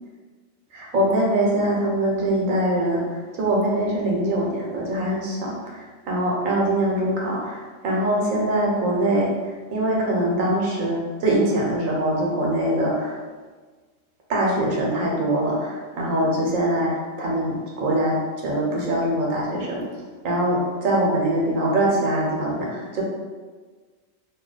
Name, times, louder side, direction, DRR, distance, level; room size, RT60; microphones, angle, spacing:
voice 1, 0.7-3.0 3.4-9.3 9.7-13.2 14.3-19.8 20.2-23.0, right 1 dB, 80° right, -3 dB, 1.2 m, -23 dB
2.9 x 2.2 x 3.8 m, 1.4 s
omnidirectional pair, 1.4 m